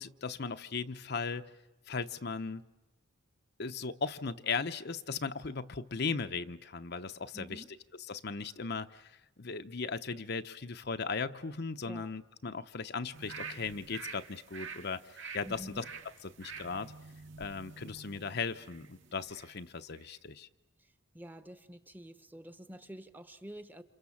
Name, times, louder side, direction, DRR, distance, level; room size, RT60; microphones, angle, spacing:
voice 1, 0.0-1.4 1.9-2.6 3.6-7.6 8.1-15.8 16.4-16.9 17.4-20.5, left 4 dB, 50° left, 8 dB, 0.9 m, -37 dB
voice 2, 7.3-7.7 11.8-12.1 15.4-15.8 20.8-23.8, equal, 10° right, 10 dB, 1.1 m, -48 dB
sound 1, 13.1-19.6 19.9-20.1, right 5 dB, 65° right, 2.1 m, -48 dB
29.0 x 27.5 x 7.3 m, 1.0 s
head